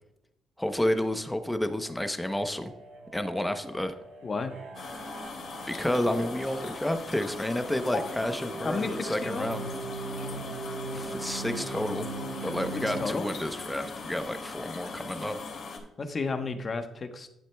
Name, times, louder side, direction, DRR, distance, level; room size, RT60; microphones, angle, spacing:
voice 1, 0.6-2.7 3.1-3.9 5.7-9.6 10.9-12.1 12.4-15.4, left 1 dB, 5° left, 9 dB, 0.8 m, -30 dB
sound 1, 1.7-13.0, right 3 dB, 85° right, 3.4 m, -40 dB
sound 2, 4.7-15.8, left 4 dB, 60° left, 2.6 m, -40 dB
voice 2, 8.6-9.5 12.8-13.2 16.0-17.3, left 4 dB, 40° left, 7 dB, 1.1 m, -32 dB
11.5 x 7.3 x 2.3 m, 0.85 s
cardioid pair, 90°, 0 cm